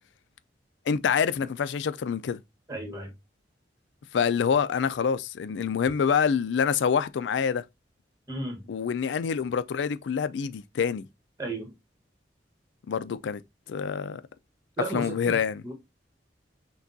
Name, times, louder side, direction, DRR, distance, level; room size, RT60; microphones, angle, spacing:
voice 1, 0.9-2.4 4.1-7.6 8.7-11.0 12.9-13.4 13.7-14.2 14.9-15.6, left 6 dB, 80° left, 0.4 m, -26 dB
voice 2, 2.7-3.1 8.3-8.6 11.4-11.7 14.8-15.4 15.6-15.7, right 2 dB, 15° right, 1.2 m, -33 dB
5.9 x 2.3 x 2.6 m
head